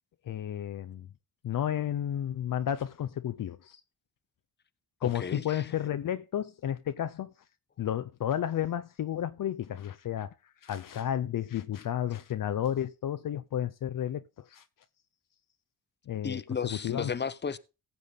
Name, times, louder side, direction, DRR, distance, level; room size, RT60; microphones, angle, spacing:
voice 1, 0.2-1.1 1.4-3.8 5.0-7.3 7.8-10.3 10.6-14.6 16.1-16.4 16.8-17.1, left 10 dB, 60° left, 0.6 m, -32 dB
voice 2, 5.0-5.7 16.2-17.6, left 6 dB, 30° left, 0.8 m, -34 dB
15.0 x 7.1 x 4.1 m
supercardioid pair, 50°, 38 cm